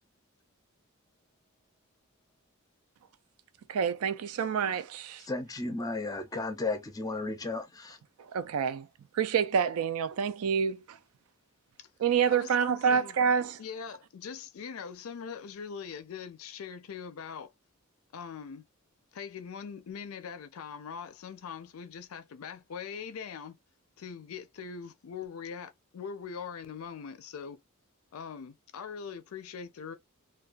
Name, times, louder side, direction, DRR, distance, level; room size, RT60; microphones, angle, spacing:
voice 1, 3.7-5.2 8.2-8.9 9.1-11.0 12.0-13.6, right 7 dB, 75° right, 0.4 m, -27 dB
voice 2, 5.2-8.0, left 3 dB, 15° left, 0.5 m, -34 dB
voice 3, 12.3-13.1 13.6-17.5 18.1-18.6 19.1-23.6 24.0-27.6 28.1-29.9, left 6 dB, 70° left, 0.4 m, -42 dB
2.3 x 2.2 x 2.4 m
head